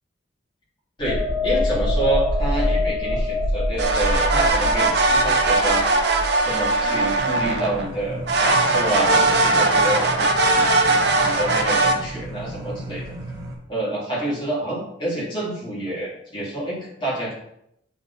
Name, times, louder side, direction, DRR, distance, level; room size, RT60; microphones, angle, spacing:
sound 1, 1.0-8.4 8.8-9.0, left 1 dB, 65° left, 1.6 m, -25 dB
voice 1, 1.0-5.8 6.4-13.1 13.7-17.3, right 1 dB, 30° left, -6 dB, 2.8 m, -28 dB
sound 2, 3.8-7.9 8.3-11.9, right 2 dB, 65° right, 0.9 m, -19 dB
sound 3, 7.2-13.5, right 1 dB, 20° right, 1.3 m, -35 dB
6.9 x 4.3 x 4.1 m, 0.77 s
head